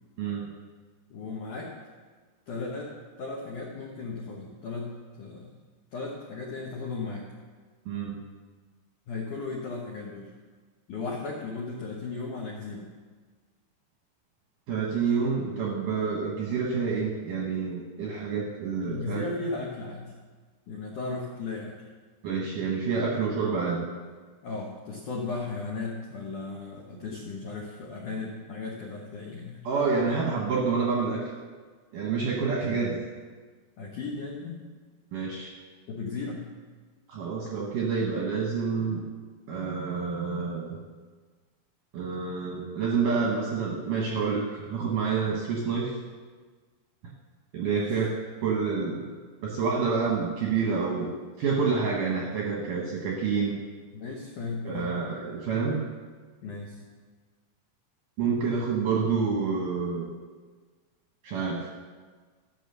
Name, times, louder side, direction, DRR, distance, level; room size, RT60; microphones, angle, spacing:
voice 1, 1.1-1.7 2.5-5.6 5.9-7.3 9.1-10.3 10.9-12.9 18.8-20.1 20.7-21.8 24.4-29.6 32.6-32.8 33.8-34.6 35.9-36.5 47.7-48.0 53.9-54.9 56.4-56.8, left 3 dB, 80° left, -2 dB, 1.8 m, -36 dB
voice 2, 7.9-8.2 14.7-19.2 22.2-23.9 29.6-31.3 31.9-33.0 35.1-35.5 37.1-39.0 39.5-40.8 41.9-46.0 47.5-48.1 48.4-49.1 49.4-53.6 54.6-55.8 58.2-60.1 61.2-61.7, right 5 dB, 70° right, -2 dB, 2.0 m, -28 dB
14.0 x 6.1 x 6.7 m, 1.4 s
omnidirectional pair, 5.3 m